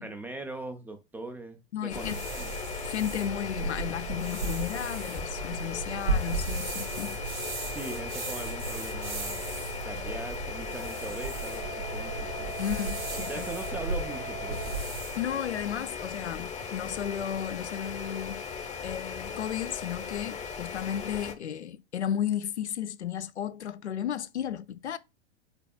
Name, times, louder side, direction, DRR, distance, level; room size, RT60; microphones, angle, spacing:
voice 1, 0.0-2.5 7.7-9.5 9.8-12.5 13.3-14.8, right 2 dB, 5° right, 0.3 m, -41 dB
voice 2, 1.7-2.2 2.8-7.2 12.6-13.5 15.1-18.4 18.8-25.0, left 10 dB, 80° left, 0.6 m, -34 dB
sound 1, 1.9-21.3, left 5 dB, 20° left, 0.7 m, -38 dB
sound 2, 1.9-15.2, right 3 dB, 85° right, 2.2 m, -36 dB
Wind instrument woodwind instrument, 10.3-14.9, right 9 dB, 45° right, 1.0 m, -43 dB
5.3 x 4.2 x 2.2 m
figure-of-eight pair, 95°, 34 cm